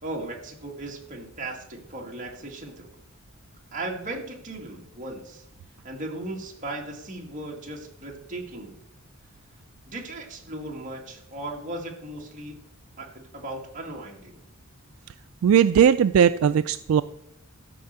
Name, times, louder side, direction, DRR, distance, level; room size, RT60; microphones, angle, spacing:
voice 1, 0.0-2.9 3.7-5.4 5.8-8.8 9.9-12.6 13.0-14.4, right 2 dB, 35° right, -1 dB, 2.1 m, -37 dB
voice 2, 15.4-17.0, right 8 dB, 70° right, 13 dB, 0.3 m, -18 dB
13.0 x 5.7 x 6.7 m, 0.79 s
head